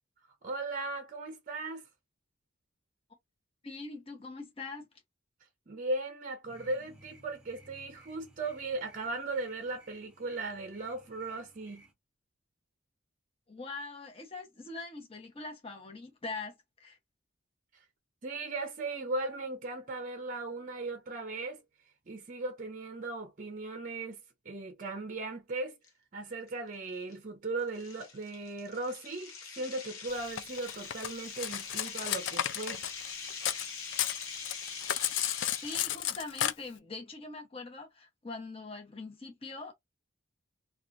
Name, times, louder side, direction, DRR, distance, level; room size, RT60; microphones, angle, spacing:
voice 1, 0.4-1.9 5.7-11.9 18.2-21.6 22.1-25.8 26.1-32.8, right 2 dB, 40° right, 0.5 m, -37 dB
voice 2, 3.6-4.9 13.5-17.0 35.6-39.7, left 3 dB, 25° left, 0.8 m, -42 dB
sound 1, 6.5-11.9, right 1 dB, 5° right, 0.8 m, -59 dB
sound 2, 25.8-25.9 26.5-26.7 27.1-27.2 27.7-36.1, left 5 dB, 90° left, 0.8 m, -43 dB
Cutlery silverware, 30.4-33.7 33.9-36.5, left 11 dB, 60° left, 0.3 m, -33 dB
2.8 x 2.3 x 2.4 m
head